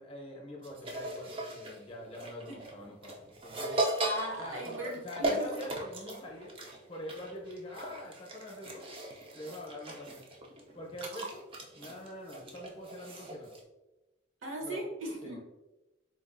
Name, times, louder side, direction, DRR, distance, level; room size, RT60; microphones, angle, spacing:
voice 1, 0.0-3.8 4.4-6.6 6.9-9.0 9.3-10.2 10.7-11.4 11.7-13.5 14.6-14.8 15.2-15.4, left 1 dB, 25° left, -1 dB, 0.6 m, -44 dB
sound 1, 0.6-13.6, right 1 dB, 25° right, 0.3 m, -38 dB
voice 2, 3.7-5.5 14.4-15.4, right 1 dB, 75° right, -1 dB, 0.8 m, -38 dB
3.8 x 2.4 x 2.4 m, 1.0 s
head